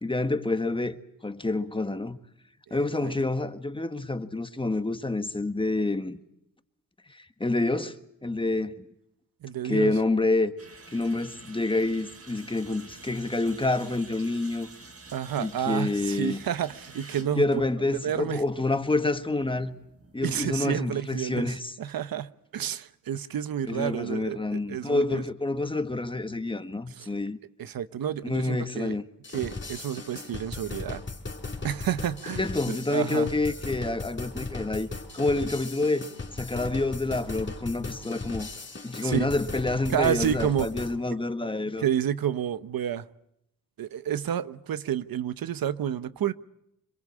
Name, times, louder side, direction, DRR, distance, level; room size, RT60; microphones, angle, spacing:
voice 1, 0.0-2.2 2.7-6.2 7.1-8.0 8.2-8.9 9.6-10.5 10.9-14.7 15.4-16.4 17.4-19.7 20.1-21.7 23.7-27.4 28.2-29.0 32.4-34.9 35.1-36.1 36.3-38.5 38.8-41.9, left 2 dB, 15° left, 1.5 m, -28 dB
voice 2, 9.4-9.9 15.1-17.5 18.0-18.4 20.2-25.2 27.0-27.1 27.6-29.0 29.3-31.0 31.6-33.3 39.0-39.3 39.9-40.7 41.8-43.0 43.8-46.3, right 9 dB, 80° right, 1.0 m, -30 dB
sound 1, 10.6-20.5, right 3 dB, 40° right, 3.7 m, -49 dB
sound 2, 29.2-41.0, left 3 dB, 35° left, 4.2 m, -37 dB
26.0 x 22.0 x 8.5 m
wide cardioid pair, 110°, 34 cm